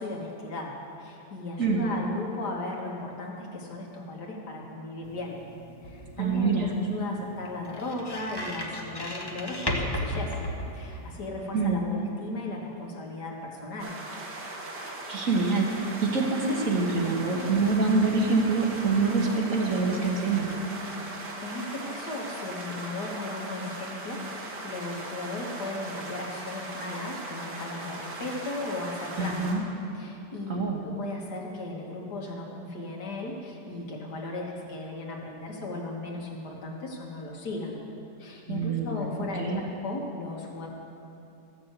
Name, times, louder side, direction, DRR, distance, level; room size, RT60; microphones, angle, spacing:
voice 1, 0.0-5.4 5.8-10.3 10.7-13.9 21.4-29.5 29.9-37.8 38.2-40.7, left 2 dB, 70° left, -1 dB, 2.1 m, -36 dB
sound 1, 5.1-11.3, left 1 dB, 20° left, 0.9 m, -35 dB
voice 2, 6.2-6.7 11.5-11.8 15.1-15.7 16.0-20.5 29.2-29.6 30.5-30.8 38.5-39.6, right 3 dB, 50° right, 0 dB, 1.6 m, -25 dB
sound 2, 13.8-29.6, right 2 dB, 75° right, 2.1 m, -39 dB
14.0 x 6.9 x 8.0 m, 2.7 s
omnidirectional pair, 1.8 m